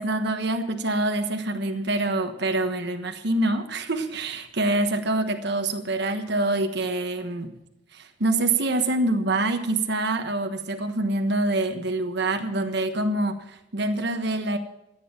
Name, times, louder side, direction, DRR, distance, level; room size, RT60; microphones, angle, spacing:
voice 1, 0.0-7.5 7.9-14.6, right 2 dB, 60° right, 6 dB, 1.3 m, -25 dB
14.5 x 9.4 x 7.4 m, 0.86 s
head